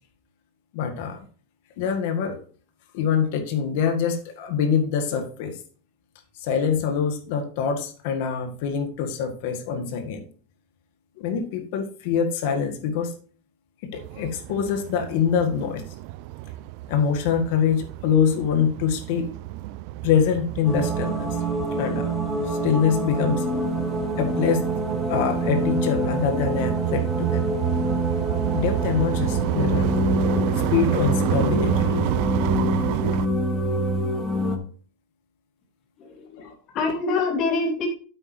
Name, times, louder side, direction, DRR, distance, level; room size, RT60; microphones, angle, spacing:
voice 1, 0.7-1.3 1.8-2.4 2.9-5.6 6.4-10.2 11.2-13.1 13.8-15.8 16.9-19.3 20.0-21.4 21.8-23.5 24.2-24.7 25.1-27.5 28.5-29.9 30.7-31.9 36.3-36.5, left 7 dB, 65° left, 6 dB, 1.8 m, -24 dB
sound 1, 13.9-33.3, right 16 dB, 60° right, 0.4 m, -29 dB
sound 2, 20.7-34.6, equal, 5° right, 1.9 m, -26 dB
voice 2, 36.0-37.9, left 3 dB, 40° left, 0 dB, 2.9 m, -26 dB
8.9 x 8.2 x 3.3 m, 0.42 s
supercardioid pair, 135°, 0 cm